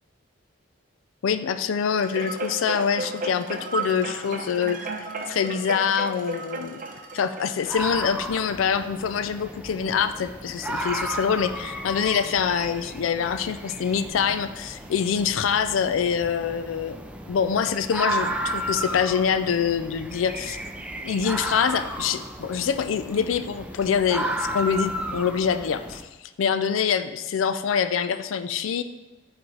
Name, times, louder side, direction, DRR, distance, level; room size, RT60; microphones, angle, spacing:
voice 1, 1.2-6.8 7.1-17.0 17.3-20.6 21.0-26.0 26.4-28.8, left 7 dB, 85° left, 11 dB, 0.4 m, -25 dB
sound 1, 2.0-8.5 9.1-9.2, right 3 dB, 45° right, 0.7 m, -34 dB
sound 2, 7.7-26.0, right 1 dB, 5° right, 0.4 m, -33 dB
7.6 x 4.1 x 4.6 m, 1.1 s
head